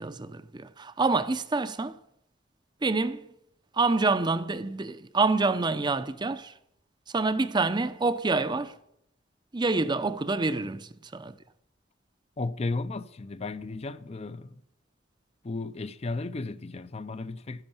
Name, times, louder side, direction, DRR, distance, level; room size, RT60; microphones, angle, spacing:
voice 1, 0.0-2.0 2.8-3.2 3.8-6.5 7.1-8.7 9.5-11.3, right 3 dB, 25° right, 0.6 m, -27 dB
voice 2, 12.4-14.6 15.4-17.6, left 3 dB, 35° left, 0.5 m, -34 dB
12.5 x 10.5 x 7.2 m
head